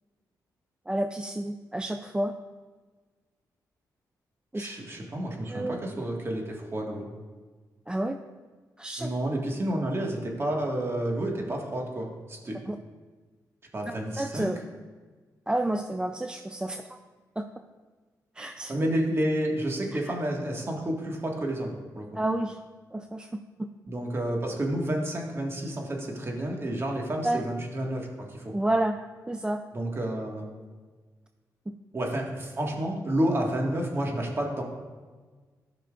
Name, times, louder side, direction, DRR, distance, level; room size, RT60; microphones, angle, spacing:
voice 1, 0.9-2.3 4.5-4.7 5.5-5.8 7.9-8.2 8.8-9.1 12.7-12.8 13.9-14.6 15.5-16.9 17.4-17.5 18.4-18.7 20.0-20.2 22.1-22.6 22.9-23.7 27.2-27.4 28.5-29.0 29.3-29.6 31.7-31.8, right 1 dB, 10° right, 6 dB, 0.4 m, -30 dB
voice 2, 4.5-7.1 9.0-12.7 13.7-14.5 18.7-22.1 23.9-28.5 29.7-30.4 31.9-34.6, right 1 dB, 35° right, 0 dB, 1.7 m, -30 dB
13.5 x 5.9 x 2.5 m, 1.4 s
cardioid pair, 70°, 7 cm